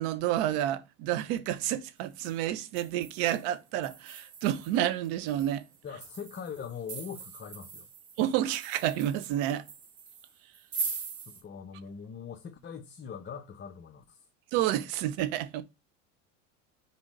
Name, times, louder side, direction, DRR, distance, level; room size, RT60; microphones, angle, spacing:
voice 1, 0.0-5.6 8.2-9.6 14.5-15.6, right 12 dB, 65° right, 1.1 m, -29 dB
sound 1, 2.0-2.3 2.8-11.4, right 4 dB, 50° right, 3.4 m, -42 dB
voice 2, 5.8-7.9 11.3-14.2, left 7 dB, 30° left, 1.0 m, -42 dB
4.9 x 4.2 x 5.0 m
hypercardioid pair, 90°, 38 cm